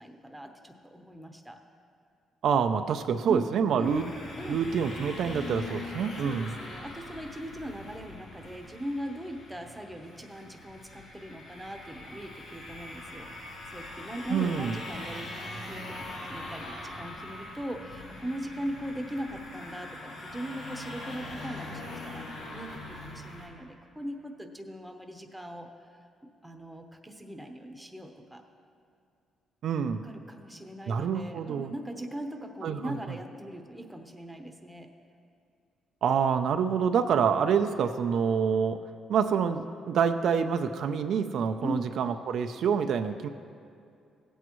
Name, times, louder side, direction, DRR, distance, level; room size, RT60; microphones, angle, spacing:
voice 1, 0.0-1.6 3.2-4.0 4.4-4.6 6.2-15.3 15.5-16.0 16.3-22.2 22.5-25.7 26.4-28.4 30.0-34.9 41.6-41.9, equal, 5° right, 4 dB, 0.9 m, -39 dB
voice 2, 2.4-4.1 4.4-6.5 14.3-14.7 29.6-30.0 30.9-31.7 32.6-33.0 36.0-38.8 39.1-43.3, right 7 dB, 70° right, 7 dB, 0.4 m, -27 dB
sound 1, 3.8-23.5, left 2 dB, 80° left, 2.1 m, -42 dB
16.0 x 8.1 x 3.1 m, 2.4 s
cardioid pair, 90°, 0 cm